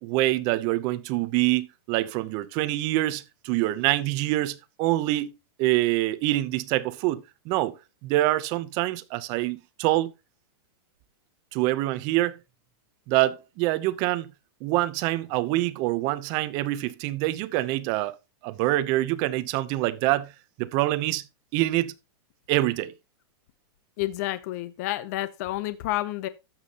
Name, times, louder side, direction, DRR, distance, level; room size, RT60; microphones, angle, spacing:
voice 1, 0.0-5.3 5.6-7.8 8.0-10.1 11.5-12.3 13.1-14.3 14.6-18.2 18.4-20.3 20.6-21.3 21.5-21.9 22.5-22.9, right 17 dB, 30° right, 0.7 m, -25 dB
voice 2, 24.0-26.3, left 16 dB, 40° left, 0.7 m, -30 dB
12.5 x 7.3 x 2.9 m
supercardioid pair, 165°, 13 cm